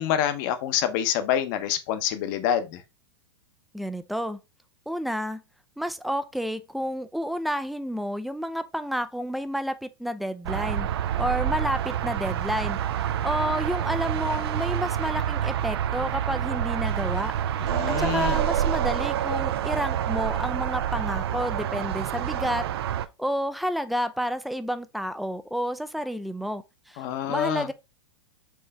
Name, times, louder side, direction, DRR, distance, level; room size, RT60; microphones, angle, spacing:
voice 1, 0.0-2.8 17.6-18.4 27.0-27.7, left 10 dB, 50° left, 0.8 m, -27 dB
voice 2, 3.7-4.4 4.9-5.4 5.8-10.9 11.2-12.8 13.2-17.3 17.6-22.7 23.2-27.0 27.3-27.7, equal, ahead, 0.3 m, -30 dB
sound 1, 10.4-23.1, right 10 dB, 70° right, 0.4 m, -27 dB
4.5 x 3.2 x 3.3 m
hypercardioid pair, 115°, 13 cm